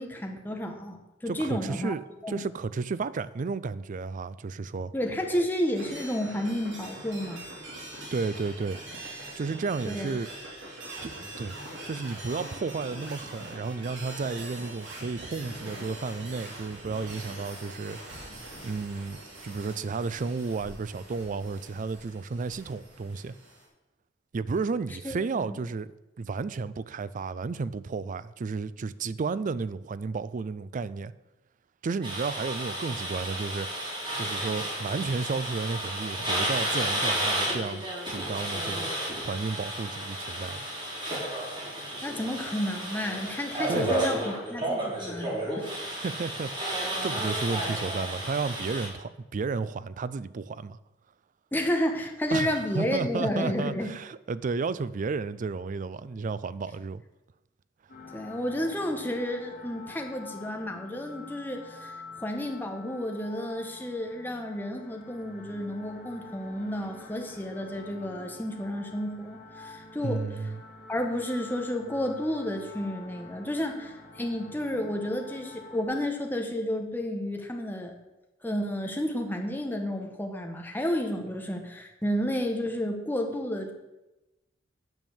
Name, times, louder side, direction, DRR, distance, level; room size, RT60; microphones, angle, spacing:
voice 1, 0.0-1.9 2.2-2.4 4.9-7.4 9.9-10.2 25.0-25.6 42.0-45.7 51.5-53.9 58.1-70.2 70.9-78.0 78.4-83.7, equal, 10° left, 1.2 m, -31 dB
voice 2, 1.3-4.9 8.1-8.8 9.4-10.3 11.0-11.1 11.4-11.6 11.8-23.3 24.3-25.9 26.2-31.1 31.8-33.7 34.2-38.9 39.2-40.7 43.7-44.1 45.9-50.8 52.3-57.0 70.0-70.6, right 4 dB, 45° right, 0.4 m, -32 dB
sound 1, 5.7-23.7, right 1 dB, 70° right, 2.6 m, -43 dB
sound 2, 32.0-48.9, right 1 dB, 25° right, 3.2 m, -32 dB
sound 3, 57.9-75.9, left 3 dB, 50° left, 2.0 m, -47 dB
9.1 x 5.4 x 7.1 m
head